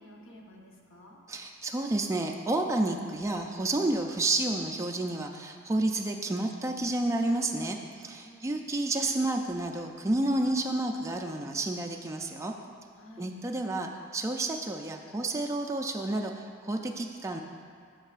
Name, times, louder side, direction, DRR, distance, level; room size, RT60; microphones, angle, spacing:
voice 1, 0.0-1.2 8.2-8.6 13.0-13.4, left 1 dB, 70° left, 0 dB, 0.9 m, -51 dB
voice 2, 1.3-12.5 13.2-17.4, right 2 dB, 15° right, 2 dB, 0.3 m, -30 dB
9.9 x 6.1 x 2.4 m, 2.2 s
head